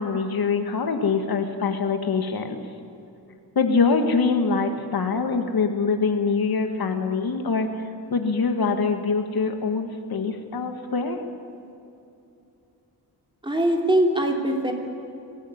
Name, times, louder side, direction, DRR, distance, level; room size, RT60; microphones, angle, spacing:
voice 1, 0.0-2.6 3.6-7.7 8.1-11.2, left 4 dB, 65° left, 5 dB, 1.8 m, -24 dB
voice 2, 13.4-14.7, right 1 dB, 10° right, 1 dB, 3.0 m, -21 dB
22.5 x 15.5 x 9.5 m, 2.8 s
wide cardioid pair, 140°, 40 cm